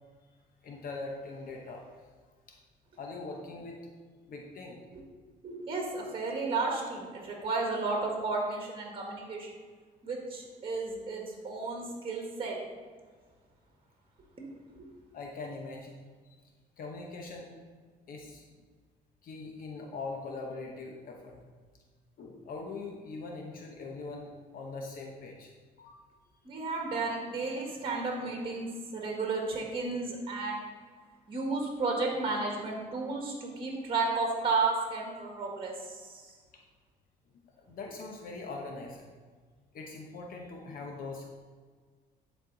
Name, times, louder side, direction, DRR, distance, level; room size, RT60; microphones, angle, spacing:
voice 1, 0.6-2.0 2.5-2.6 3.0-3.9 4.3-4.8 15.1-16.4 16.8-17.5 18.1-18.4 19.2-21.5 22.2-25.5 25.8-26.0 27.6-27.8 36.5-36.6 37.4-39.1 39.7-41.3, left 3 dB, 55° left, 1 dB, 0.9 m, -42 dB
voice 2, 5.4-9.5 10.0-12.6 14.4-14.5 14.8-14.9 26.4-30.6 31.3-36.3, right 3 dB, 30° right, 0 dB, 1.6 m, -33 dB
10.5 x 4.4 x 4.0 m, 1.5 s
cardioid pair, 110°, 17 cm